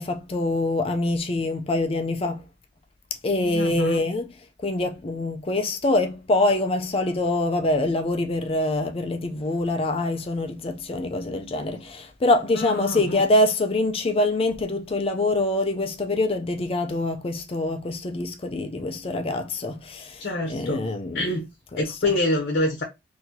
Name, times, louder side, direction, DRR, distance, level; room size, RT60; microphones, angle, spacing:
voice 1, 0.0-2.4 3.2-4.3 4.6-21.3 21.7-22.0, left 2 dB, 30° left, 0.4 m, -25 dB
voice 2, 3.4-4.0 12.6-13.2 20.2-20.8 21.1-21.5 21.8-22.8, left 1 dB, 55° left, 0.9 m, -26 dB
4.1 x 2.7 x 2.7 m
head